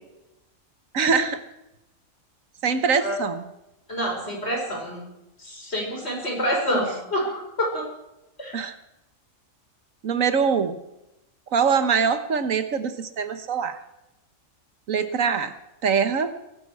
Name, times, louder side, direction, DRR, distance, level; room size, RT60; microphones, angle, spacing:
voice 1, 0.9-1.4 2.6-3.4 6.7-6.8 8.5-8.7 10.0-10.8 11.5-13.8 14.9-15.5 15.8-16.3, right 6 dB, 80° right, 10 dB, 1.6 m, -23 dB
voice 2, 3.9-5.0 5.4-7.9 8.4-8.5, equal, 50° left, 0 dB, 5.8 m, -27 dB
21.5 x 12.0 x 4.8 m, 0.92 s
omnidirectional pair, 1.4 m